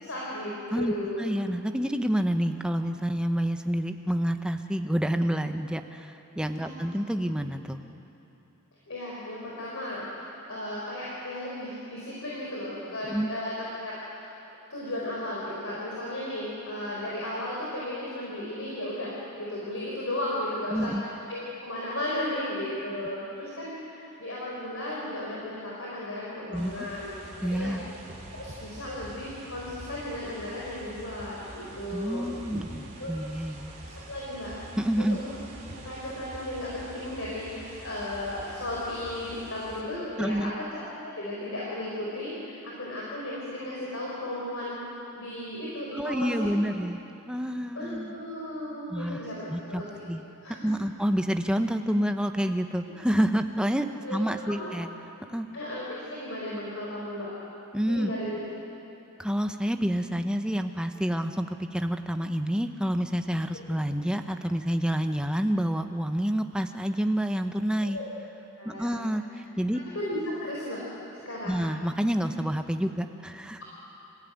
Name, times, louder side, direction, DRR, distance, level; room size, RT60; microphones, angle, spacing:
voice 1, 0.0-1.3 6.6-6.9 8.9-13.5 13.8-14.3 14.7-20.9 21.3-27.1 27.4-27.8 28.3-32.3 33.0-33.1 34.1-34.5 35.0-35.3 35.8-46.5 47.7-49.9 50.4-50.6 54.0-54.2 54.5-54.7 55.5-57.3 57.9-58.4 67.8-68.1 68.5-69.0 69.9-70.8 71.1-71.6, left 1 dB, 60° left, -5 dB, 4.2 m, -35 dB
voice 2, 1.2-7.8 13.1-13.3 20.7-21.0 26.5-26.9 27.4-27.8 31.9-33.7 34.8-35.2 40.2-40.5 45.9-48.1 48.9-49.8 50.1-50.2 50.6-54.9 55.3-55.5 57.7-58.1 59.2-68.0 68.6-69.2 69.6-69.8 71.5-73.6, equal, 5° right, 7 dB, 0.8 m, -28 dB
sound 1, 26.5-39.8, right 1 dB, 30° right, 3.3 m, -45 dB
26.0 x 15.0 x 9.3 m, 2.9 s
head